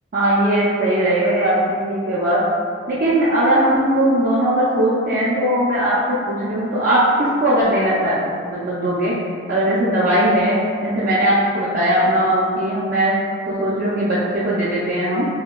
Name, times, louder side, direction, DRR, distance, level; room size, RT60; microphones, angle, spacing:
voice 1, 0.1-2.4 2.9-8.2 8.4-9.1 9.5-13.1 13.5-15.3, right 1 dB, 45° right, -9 dB, 0.4 m, -19 dB
3.1 x 2.8 x 2.2 m, 2.2 s
head